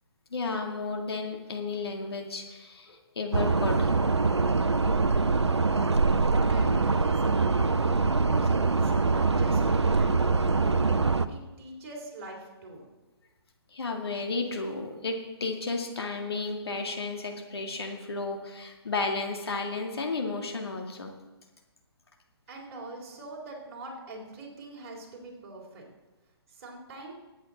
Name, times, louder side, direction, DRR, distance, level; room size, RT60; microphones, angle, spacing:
voice 1, 0.3-3.9 13.7-21.1, left 3 dB, 65° left, 2 dB, 2.0 m, -33 dB
sound 1, 3.3-11.3, right 4 dB, 85° right, 0.7 m, -24 dB
voice 2, 5.2-5.7 6.2-7.4 8.2-10.4 11.3-12.9 22.5-25.8 26.5-27.1, right 2 dB, 35° right, -1 dB, 3.6 m, -43 dB
19.5 x 8.7 x 4.0 m, 1.1 s
figure-of-eight pair, 135°, 14 cm